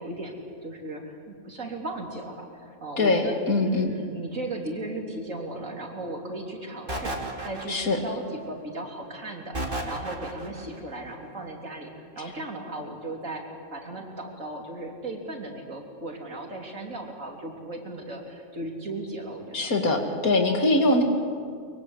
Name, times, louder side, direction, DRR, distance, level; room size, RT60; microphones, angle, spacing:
voice 1, 0.0-3.3 3.6-11.9 12.2-13.4 13.7-20.2 20.9-21.0, right 2 dB, 65° right, 1 dB, 3.7 m, -36 dB
voice 2, 3.0-3.9 7.7-8.0 19.5-21.0, left 2 dB, 90° left, 3 dB, 2.9 m, -22 dB
sound 1, 6.9-8.1 9.5-10.6, right 1 dB, 40° right, 2.9 m, -32 dB
23.5 x 23.0 x 8.1 m, 2.3 s
omnidirectional pair, 1.5 m